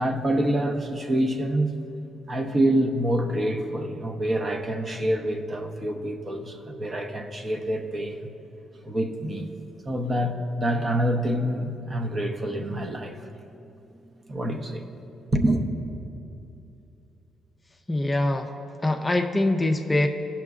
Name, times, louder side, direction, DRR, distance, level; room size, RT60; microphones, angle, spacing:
voice 1, 0.0-1.7 2.3-8.3 8.8-9.5 9.8-13.2 14.3-14.8 15.3-15.6, right 1 dB, 35° right, 4 dB, 0.8 m, -26 dB
voice 2, 17.9-18.5 18.8-20.1, left 2 dB, 15° left, 4 dB, 0.5 m, -23 dB
16.5 x 5.8 x 2.4 m, 2.7 s
cardioid pair, 90°, 0 cm